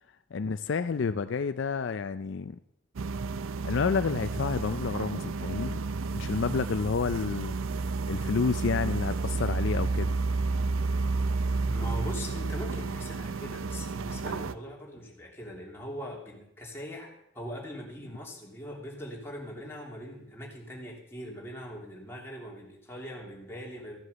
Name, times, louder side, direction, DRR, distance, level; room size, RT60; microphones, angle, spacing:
voice 1, 0.3-2.6 3.6-5.8 6.1-7.5 8.1-10.2, left 5 dB, 65° left, 11 dB, 0.4 m, -30 dB
sound 1, 3.0-14.6, right 3 dB, 85° right, 0.5 m, -31 dB
voice 2, 11.7-24.0, equal, 10° left, -3 dB, 2.8 m, -41 dB
14.5 x 8.0 x 6.9 m, 0.78 s
head